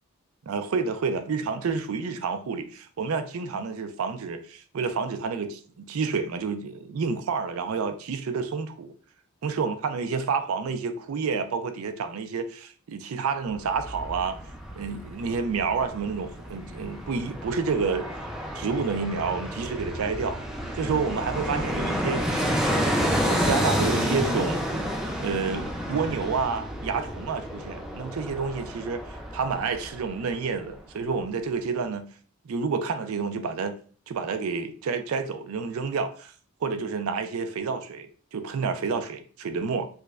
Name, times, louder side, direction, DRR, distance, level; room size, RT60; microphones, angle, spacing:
voice 1, 0.5-8.9 9.4-14.4 14.8-18.1 18.5-20.4 20.7-22.2 23.1-24.6 25.2-32.1 32.5-33.8 34.1-36.3 36.6-39.9, right 5 dB, 75° right, 0.4 m, -29 dB
Fixed-wing aircraft airplane, 13.5-30.5 30.8-30.9, equal, ahead, 0.3 m, -30 dB
4.6 x 2.1 x 2.3 m
head